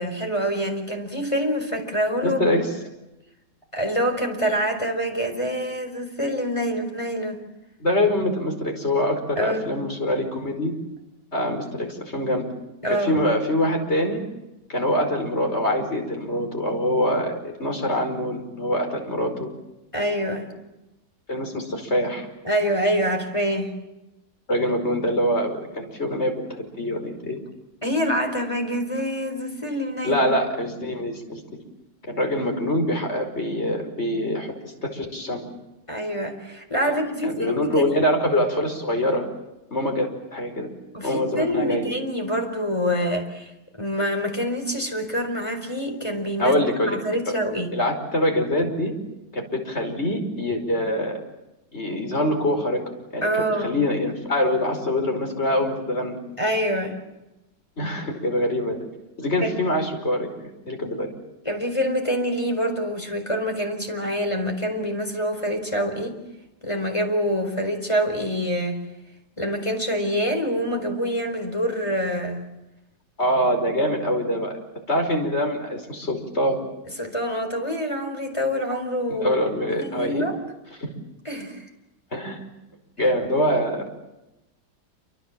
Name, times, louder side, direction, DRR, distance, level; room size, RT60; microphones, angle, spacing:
voice 1, 0.0-2.5 3.7-7.4 9.4-9.7 12.8-13.2 19.9-20.5 22.4-23.7 27.8-30.2 35.9-38.0 40.9-43.5 43.8-46.5 46.8-47.7 53.2-53.8 56.4-57.0 59.4-59.6 61.4-66.2 66.6-68.8 69.4-72.4 77.0-80.4 81.2-81.6, equal, 15° left, 4 dB, 4.5 m, -26 dB
voice 2, 2.2-2.7 7.8-10.7 11.3-12.5 12.9-14.2 14.7-19.5 21.3-22.3 24.5-26.3 26.8-27.4 30.0-31.4 32.1-35.5 37.2-39.3 39.7-40.7 41.0-41.9 46.4-47.0 47.3-47.4 47.7-48.9 49.3-51.2 51.7-52.8 53.1-53.3 53.6-56.2 57.8-58.8 59.2-61.1 73.2-74.5 74.9-76.6 79.2-80.2 80.8-80.9 82.1-82.4 83.0-83.8, left 1 dB, 35° left, 4 dB, 5.4 m, -24 dB
28.5 x 26.0 x 7.6 m, 0.97 s
omnidirectional pair, 1.9 m